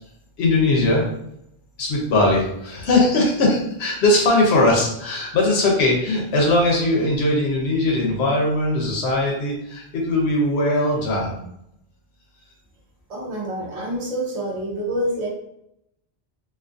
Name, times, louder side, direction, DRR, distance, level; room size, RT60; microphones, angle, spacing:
voice 1, 0.4-1.1 1.8-11.3, left 2 dB, 90° left, -2 dB, 0.9 m, -20 dB
voice 2, 13.1-15.3, right 1 dB, 45° right, -2 dB, 0.7 m, -27 dB
2.5 x 2.4 x 2.4 m, 0.78 s
omnidirectional pair, 1.1 m